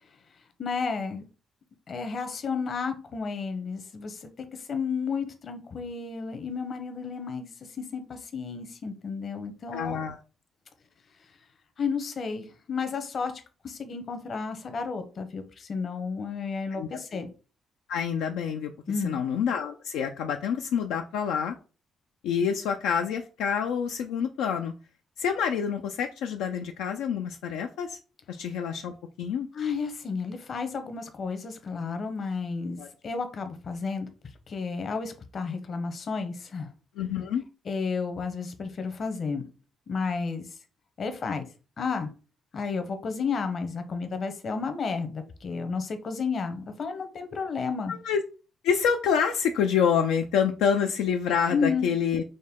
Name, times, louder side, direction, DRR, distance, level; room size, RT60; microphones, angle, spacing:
voice 1, 0.6-1.3 1.9-10.0 11.8-17.3 18.9-19.2 29.5-34.1 34.5-36.7 37.6-39.4 39.9-40.5 41.0-41.4 41.8-42.1 42.5-47.9 51.5-51.9, left 5 dB, 55° left, 8 dB, 0.8 m, -32 dB
voice 2, 9.7-10.2 16.8-17.0 17.9-18.7 19.0-21.5 22.2-24.7 25.2-28.0 28.3-29.5 32.8-32.9 37.0-37.4 47.9-48.2 48.6-52.2, left 7 dB, 90° left, 4 dB, 0.3 m, -27 dB
5.2 x 2.2 x 3.6 m, 0.35 s
supercardioid pair, 65°, 0 cm